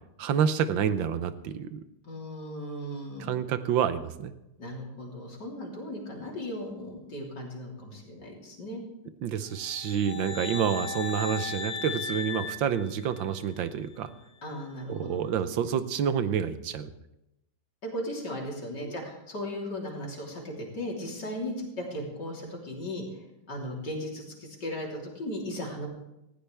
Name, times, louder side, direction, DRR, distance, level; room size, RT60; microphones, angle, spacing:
voice 1, 0.2-1.8 3.2-4.3 9.2-14.1 14.9-16.9 18.8-18.9, right 8 dB, 85° right, 11 dB, 1.6 m, -28 dB
voice 2, 2.0-3.3 4.6-8.8 14.4-15.2 17.8-25.9, left 1 dB, 65° left, -2 dB, 4.0 m, -37 dB
sound 1, 9.5-13.6, left 5 dB, 45° left, 1.0 m, -37 dB
18.5 x 16.0 x 3.4 m, 0.89 s
omnidirectional pair, 2.0 m